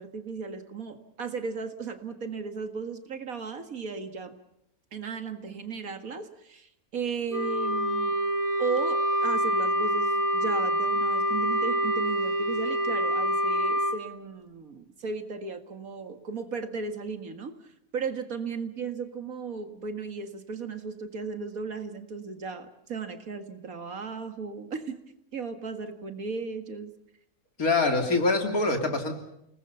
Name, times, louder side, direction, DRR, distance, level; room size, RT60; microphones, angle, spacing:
voice 1, 0.0-4.4 4.9-8.2 8.6-25.0 25.3-26.9, right 5 dB, 75° right, 7 dB, 2.3 m, -36 dB
Wind instrument woodwind instrument, 7.3-14.0, equal, 55° right, 2.1 m, -26 dB
voice 2, 27.6-29.1, left 3 dB, 80° left, 4 dB, 3.6 m, -24 dB
29.0 x 19.5 x 7.0 m, 0.80 s
omnidirectional pair, 1.5 m